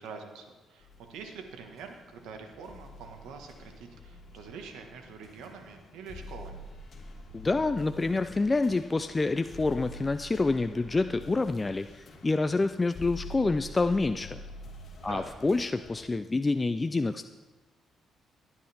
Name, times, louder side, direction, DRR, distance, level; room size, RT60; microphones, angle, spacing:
voice 1, 0.0-6.7 15.0-15.3, right 5 dB, 90° right, 4 dB, 1.5 m, -45 dB
Horror Action, 0.8-16.1, left 1 dB, 50° left, 2.2 m, -47 dB
voice 2, 7.3-14.4 15.0-17.3, left 3 dB, 25° left, 9 dB, 0.4 m, -27 dB
18.0 x 10.0 x 3.5 m, 1.2 s
cardioid pair, 90°, 0 cm